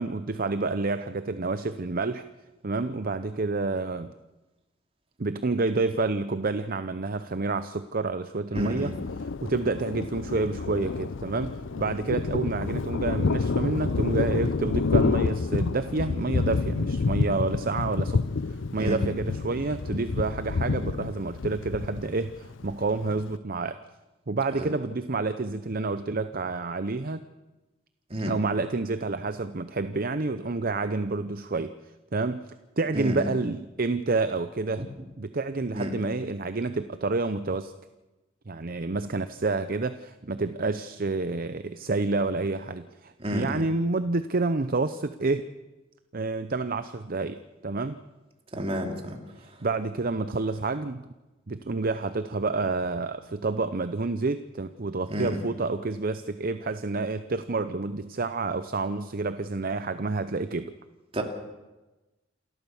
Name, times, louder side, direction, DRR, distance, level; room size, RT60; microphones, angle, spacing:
voice 1, 0.0-2.2 2.6-4.1 5.2-8.9 9.2-18.2 18.7-23.8 24.3-27.2 28.3-31.7 32.1-32.4 32.8-34.9 35.2-37.7 38.5-45.4 46.1-48.0 49.4-51.0 51.5-60.7, right 3 dB, 45° right, 11 dB, 0.7 m, -29 dB
voice 2, 8.5-8.9 18.8-19.0 24.5-24.7 28.1-28.3 32.9-33.3 34.8-34.9 35.7-35.9 43.2-43.6 48.5-49.2 55.1-55.4 61.1-61.2, equal, 30° right, 3 dB, 3.0 m, -31 dB
Thunder, 8.6-23.4, left 4 dB, 70° left, 0.6 m, -29 dB
28.0 x 13.5 x 7.2 m, 1.1 s
head